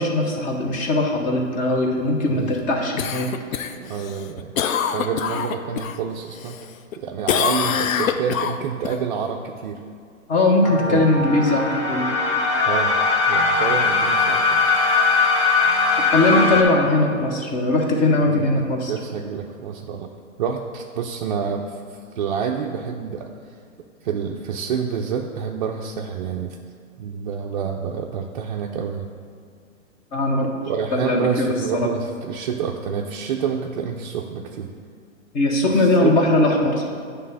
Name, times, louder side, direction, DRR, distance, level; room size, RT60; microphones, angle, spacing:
voice 1, 0.0-3.3 10.3-12.1 16.1-18.9 30.1-30.5 30.9-31.5 31.8-31.9 35.3-36.9, left 2 dB, 20° left, 1 dB, 0.8 m, -20 dB
Cough, 3.0-6.0 6.4-7.0 7.3-9.0 13.4-13.5, left 7 dB, 75° left, 0.6 m, -25 dB
voice 2, 3.8-4.6 4.9-6.6 7.0-9.8 10.9-11.0 12.7-12.9 13.3-14.6 18.2-18.5 18.9-20.1 20.4-23.3 24.0-26.6 27.0-29.1 30.7-34.7 35.7-36.1, right 7 dB, 40° right, 0 dB, 0.4 m, -28 dB
sound 1, 10.6-16.6, left 4 dB, 35° left, 1.3 m, -20 dB
9.2 x 3.4 x 5.4 m, 2.2 s
hypercardioid pair, 140°, 40 cm